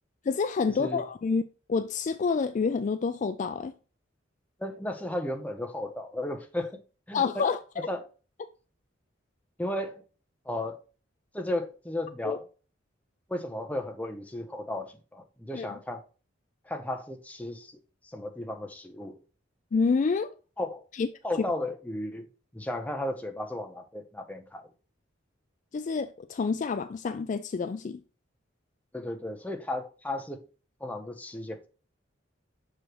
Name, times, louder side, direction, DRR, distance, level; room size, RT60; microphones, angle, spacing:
voice 1, 0.3-1.4 1.7-3.7 7.1-7.6 12.2-12.4 15.5-15.7 19.7-20.3 21.0-21.1 25.7-28.0, left 5 dB, 40° left, 0.3 m, -28 dB
voice 2, 4.6-6.8 7.1-7.5 7.8-8.1 9.6-10.0 10.4-10.8 11.3-12.4 13.3-16.0 16.6-17.8 18.0-19.2 20.6-20.8 21.2-22.3 22.5-24.7 28.9-30.4 30.8-31.7, left 1 dB, 10° left, 0.8 m, -34 dB
6.4 x 4.9 x 3.0 m
head